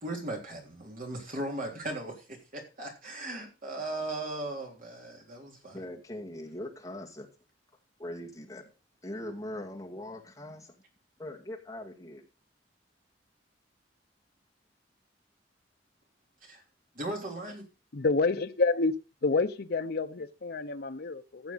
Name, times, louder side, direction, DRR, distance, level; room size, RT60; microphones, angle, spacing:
voice 1, 0.0-5.8 16.4-16.6 17.0-17.7, right 1 dB, 50° right, 1 dB, 3.5 m, -37 dB
voice 2, 5.7-7.3 8.0-8.7 9.0-10.7 11.2-12.3, left 1 dB, 20° left, -1 dB, 2.2 m, -41 dB
voice 3, 17.9-18.9 19.2-21.5, left 3 dB, 60° left, 8 dB, 0.7 m, -28 dB
14.5 x 7.1 x 4.1 m, 0.32 s
head